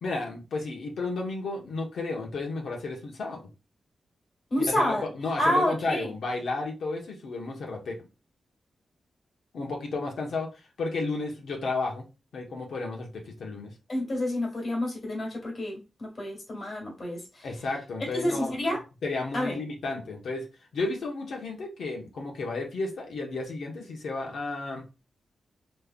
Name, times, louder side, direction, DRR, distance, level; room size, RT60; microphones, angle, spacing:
voice 1, 0.0-3.4 4.6-8.0 9.5-12.1 12.3-13.7 17.4-18.5 19.0-20.5 20.7-24.8, left 3 dB, 75° left, 1.0 m, -32 dB
voice 2, 4.5-6.1 13.9-17.5 18.1-18.8 19.3-19.6, left 1 dB, 40° left, 1.9 m, -29 dB
3.6 x 3.2 x 2.3 m
wide cardioid pair, 115°, 0 cm